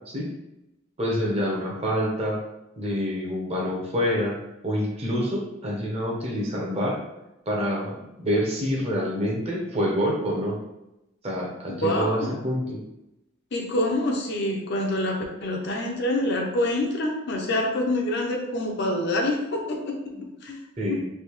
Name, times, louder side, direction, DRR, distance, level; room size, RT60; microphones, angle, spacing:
voice 1, 1.0-2.4 2.8-4.3 4.6-7.0 7.5-10.6 11.2-12.8 20.1-20.2 20.8-21.0, equal, 30° right, -2 dB, 0.8 m, -27 dB
voice 2, 11.7-12.3 13.5-20.0 20.4-20.6 20.9-21.0, left 1 dB, 55° left, 1 dB, 0.6 m, -26 dB
3.3 x 2.7 x 3.0 m, 0.90 s
head